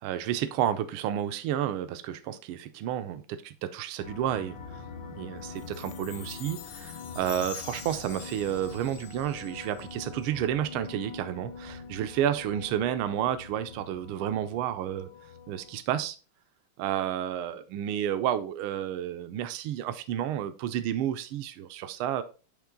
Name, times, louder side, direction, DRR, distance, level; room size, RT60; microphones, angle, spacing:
voice 1, 0.0-4.8 5.1-15.1 15.5-16.2 16.8-22.2, right 11 dB, 85° right, 1.4 m, -31 dB
sound 1, 4.0-15.8, left 5 dB, 65° left, 1.3 m, -44 dB
Chime, 5.6-10.0, left 11 dB, 90° left, 1.5 m, -45 dB
8.4 x 3.2 x 3.7 m
omnidirectional pair, 2.3 m